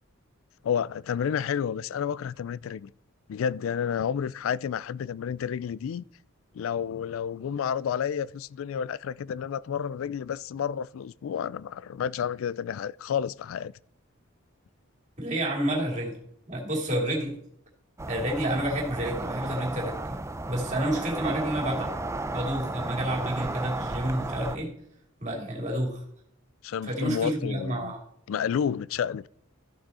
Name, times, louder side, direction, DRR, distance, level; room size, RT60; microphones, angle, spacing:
voice 1, 0.6-2.9 3.3-6.0 6.5-13.7 26.6-27.9 28.3-29.3, left 8 dB, 70° left, 0.3 m, -30 dB
voice 2, 15.2-16.2 16.5-17.3 18.1-20.2 20.5-22.0 22.3-24.7 25.2-26.0 26.9-28.0, right 1 dB, 35° right, 2.9 m, -29 dB
sound 1, 18.0-24.6, right 2 dB, 15° right, 0.4 m, -33 dB
14.0 x 6.1 x 4.2 m
head